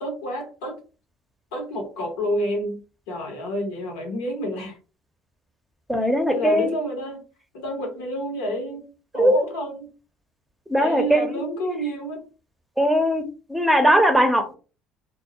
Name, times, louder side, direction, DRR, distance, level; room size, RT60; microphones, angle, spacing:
voice 1, 0.0-0.8 1.5-2.8 3.1-4.8 6.0-7.2 7.5-8.8 9.1-9.9 10.7-12.2, equal, 80° left, 2 dB, 0.8 m, -29 dB
voice 2, 5.9-6.8 9.2-9.3 10.7-11.4 12.8-13.2 13.5-14.5, equal, 5° right, 5 dB, 0.7 m, -19 dB
2.2 x 2.0 x 2.8 m, 0.34 s
hypercardioid pair, 65°, 0 cm